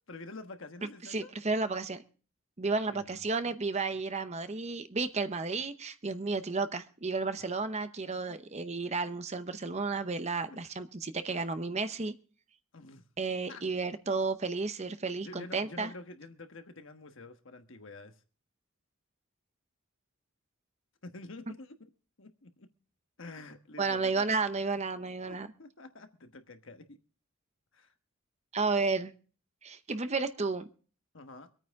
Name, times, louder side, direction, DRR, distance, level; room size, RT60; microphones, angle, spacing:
voice 1, 0.1-1.3 2.8-3.6 10.5-10.6 12.7-13.0 13.5-13.6 15.2-18.2 21.0-21.9 22.2-22.7 23.2-24.3 25.0-27.0 27.7-27.9 31.1-31.5, left 2 dB, 65° left, 7 dB, 1.3 m, -48 dB
voice 2, 1.1-2.0 2.6-12.1 13.2-15.9 23.8-25.5 28.5-29.1 29.6-30.7, right 4 dB, 30° right, 11 dB, 0.7 m, -32 dB
24.5 x 9.1 x 3.6 m, 0.40 s
head